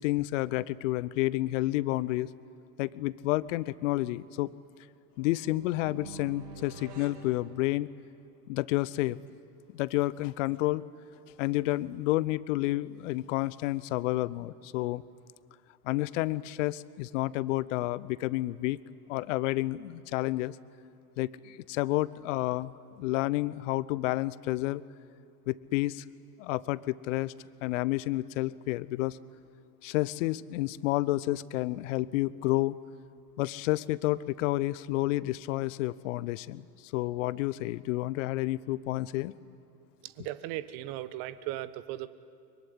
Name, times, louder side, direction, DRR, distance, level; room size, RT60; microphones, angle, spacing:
voice 1, 0.0-2.3 2.8-4.5 5.2-7.9 8.5-9.2 9.7-10.9 11.4-15.0 15.8-18.8 19.1-20.6 21.2-24.8 25.5-26.0 26.4-27.3 27.6-29.2 29.8-32.8 33.4-39.3, left 18 dB, 50° left, 19 dB, 0.9 m, -30 dB
sound 1, 5.2-8.2, right 5 dB, 75° right, 2.6 m, -48 dB
voice 2, 40.0-42.1, right 14 dB, 45° right, 15 dB, 1.3 m, -37 dB
23.5 x 23.0 x 9.9 m, 2.4 s
figure-of-eight pair, 90°, 47 cm